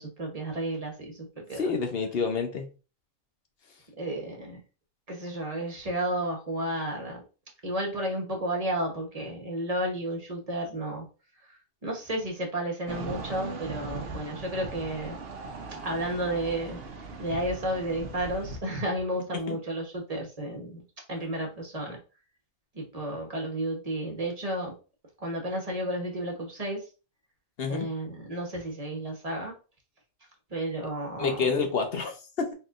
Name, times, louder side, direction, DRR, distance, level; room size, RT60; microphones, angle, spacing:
voice 1, 0.0-1.8 4.0-4.6 5.1-7.2 7.6-11.1 11.8-15.2 15.8-16.8 17.2-20.8 21.1-22.0 22.7-24.7 25.2-26.8 27.7-29.5 30.5-31.5, right 1 dB, 30° right, 0 dB, 1.0 m, -32 dB
voice 2, 1.6-2.7 19.5-19.6 27.6-27.9 31.2-32.5, left 5 dB, 50° left, 5 dB, 0.8 m, -28 dB
sound 1, 12.9-18.6, right 4 dB, 55° right, 0.8 m, -39 dB
4.2 x 3.7 x 2.5 m, 0.33 s
omnidirectional pair, 1.5 m